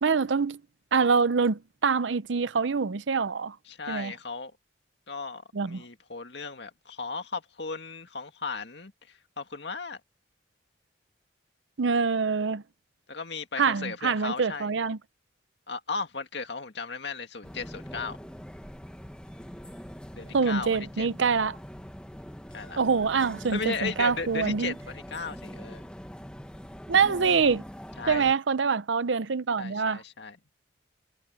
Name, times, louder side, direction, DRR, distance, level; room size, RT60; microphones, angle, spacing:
voice 1, 0.0-0.6 0.9-3.6 3.9-4.1 5.5-5.8 11.8-12.6 13.6-15.0 20.3-21.6 22.8-24.7 26.9-27.6 28.1-30.0, right 5 dB, 80° right, 0.6 m, -25 dB
voice 2, 3.7-4.5 5.1-10.0 13.1-14.7 15.7-18.2 20.2-21.1 22.5-22.8 23.5-25.8 28.0-28.3 29.6-30.4, left 4 dB, 65° left, 2.1 m, -36 dB
sound 1, 17.4-28.3, equal, 5° left, 1.2 m, -43 dB
head